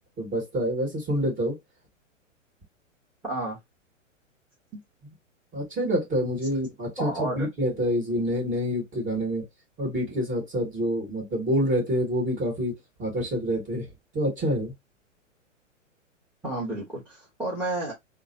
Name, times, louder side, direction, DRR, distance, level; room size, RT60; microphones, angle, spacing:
voice 1, 0.0-1.6 5.5-9.5 9.8-12.7 13.0-13.9 14.1-14.7, equal, 20° right, 1.8 m, -27 dB
voice 2, 3.3-3.6 4.7-4.8 7.0-7.5 16.4-17.9, right 2 dB, 5° right, 1.1 m, -31 dB
3.8 x 2.2 x 2.7 m
figure-of-eight pair, 115°, 39 cm